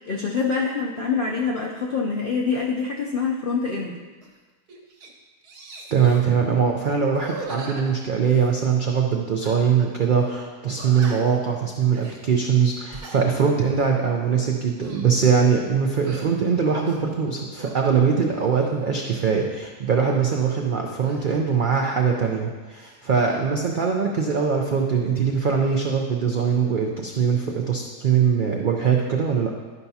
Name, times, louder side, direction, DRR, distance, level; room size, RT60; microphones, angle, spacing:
voice 1, 0.0-4.0, left 5 dB, 70° left, -2 dB, 0.5 m, -25 dB
sound 1, 4.2-4.4 4.7-5.1 5.4-6.3 7.1-8.7 9.4-9.9 10.2-10.3 10.8-11.4 11.9-12.2 12.7-13.2 13.7-13.9 14.6-15.2 15.9-16.3 16.8-17.8 18.3-19.2 21.0-22.5 22.7-23.4, right 3 dB, 75° right, 1.5 m, -41 dB
voice 2, 5.9-29.6, right 6 dB, 90° right, 1 dB, 0.4 m, -22 dB
11.0 x 5.7 x 2.7 m, 1.3 s
omnidirectional pair, 1.7 m